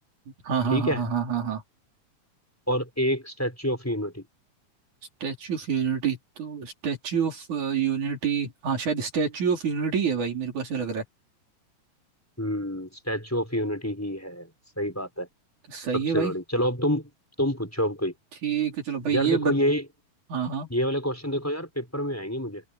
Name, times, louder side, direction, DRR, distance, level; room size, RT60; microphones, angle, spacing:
voice 1, 0.3-1.6 5.2-11.0 15.7-16.4 18.4-19.5 20.3-20.7, right 7 dB, 75° right, 5.4 m, -27 dB
voice 2, 2.7-4.2 12.4-14.5 14.8-15.3 15.9-17.1 17.4-18.1 19.1-19.8 20.7-22.6, equal, 5° left, 4.7 m, -27 dB
omnidirectional pair, 3.4 m